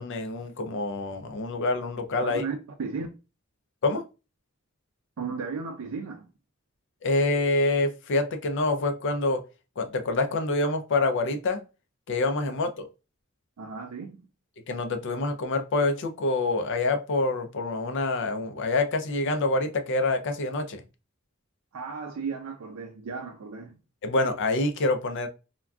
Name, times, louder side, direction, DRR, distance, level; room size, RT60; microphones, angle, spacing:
voice 1, 0.0-2.4 3.8-4.0 7.0-9.4 9.8-11.6 12.1-12.9 14.7-20.8 24.0-25.3, left 2 dB, 60° left, 0.5 m, -26 dB
voice 2, 2.2-3.1 5.2-6.3 13.6-14.2 21.7-23.7, right 5 dB, 80° right, 0.4 m, -35 dB
3.5 x 2.2 x 2.3 m
head